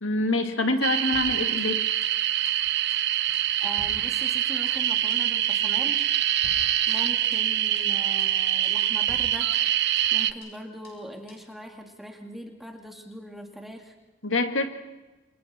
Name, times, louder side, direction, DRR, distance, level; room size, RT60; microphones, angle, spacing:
voice 1, 0.0-1.8 14.2-14.7, left 2 dB, 80° left, 5 dB, 2.1 m, -25 dB
sound 1, 0.8-10.3, right 12 dB, 55° right, 0.7 m, -25 dB
sound 2, 1.1-2.2 2.4-2.6 2.9-3.1 3.3-4.8 5.1-5.3 5.5-5.7 6.0-6.2 6.4-7.5 7.8-7.9 8.2-8.4 8.6-8.8 9.1-10.2 10.4-10.6 10.8-11.0 11.3-11.5, left 1 dB, 50° left, 7.6 m, -49 dB
voice 2, 3.6-6.0 6.9-9.5 10.1-13.9, equal, ahead, 1 dB, 2.4 m, -40 dB
29.0 x 25.5 x 4.4 m, 1.1 s
head